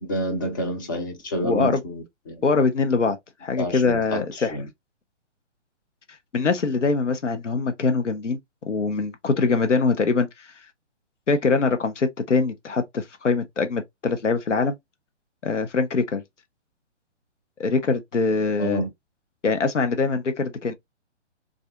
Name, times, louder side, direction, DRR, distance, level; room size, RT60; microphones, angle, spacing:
voice 1, 0.0-2.5 3.6-4.7 18.6-18.9, equal, 20° left, 0.5 m, -29 dB
voice 2, 1.4-1.8 2.4-4.6 6.3-8.4 8.6-10.5 11.3-14.7 15.4-16.2 17.6-18.8 19.4-20.7, left 4 dB, 80° left, 0.7 m, -23 dB
3.4 x 2.5 x 2.3 m
figure-of-eight pair, 130°, 36 cm